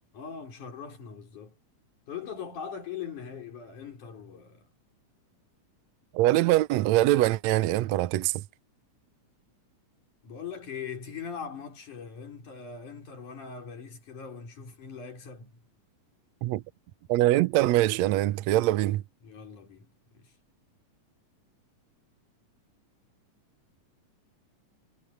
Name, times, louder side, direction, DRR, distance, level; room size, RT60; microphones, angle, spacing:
voice 1, 0.1-1.6 2.1-4.7 10.2-15.6 19.2-20.3, left 6 dB, 75° left, 5.9 m, -41 dB
voice 2, 6.1-8.4 16.4-16.6 17.1-19.0, right 16 dB, 75° right, 1.8 m, -23 dB
omnidirectional pair, 3.6 m